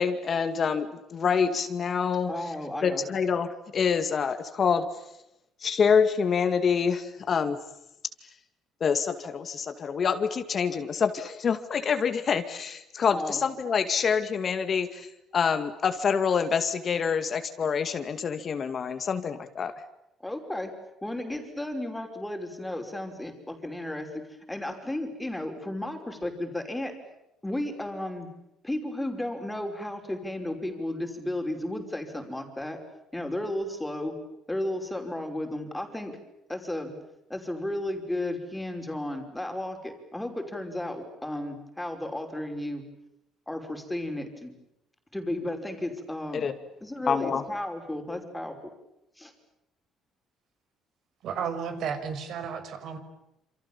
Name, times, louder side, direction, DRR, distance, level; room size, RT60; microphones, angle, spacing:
voice 1, 0.0-2.3 2.8-4.9 5.6-7.6 8.8-15.1 15.3-19.7 46.3-46.5 47.1-47.4, left 6 dB, 35° left, 9 dB, 2.2 m, -26 dB
voice 2, 2.3-3.0 13.1-13.4 20.2-20.7 21.0-24.1 24.5-26.9 27.4-28.3 28.6-32.8 33.1-34.2 34.5-36.1 36.5-36.9 37.3-42.8 43.5-44.5 45.1-46.5 46.8-48.6 49.2-49.3, left 1 dB, 5° left, 5 dB, 5.5 m, -33 dB
voice 3, 51.2-53.0, right 7 dB, 60° right, 9 dB, 5.9 m, -33 dB
28.5 x 28.5 x 7.3 m, 0.84 s
cardioid pair, 145°, 0 cm